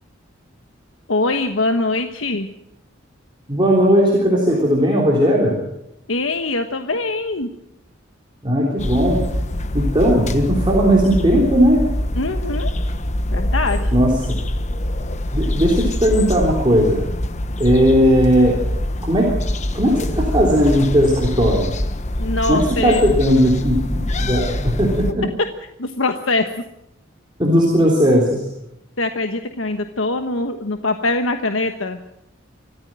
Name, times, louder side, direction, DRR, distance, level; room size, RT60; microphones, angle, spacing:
voice 1, 1.1-2.5 6.1-7.5 12.2-12.7 13.3-13.9 22.2-23.1 25.8-26.5 29.0-32.0, left 2 dB, 80° left, 7 dB, 1.2 m, -22 dB
voice 2, 3.5-5.6 8.4-9.4 9.7-12.0 13.9-14.4 15.3-17.1 17.6-18.7 19.0-19.4 19.7-21.7 22.5-25.3 27.4-28.5, equal, 25° right, -3 dB, 3.5 m, -17 dB
sound 1, 8.8-25.1, left 1 dB, 35° left, 1.1 m, -24 dB
25.0 x 14.5 x 7.6 m, 0.84 s
head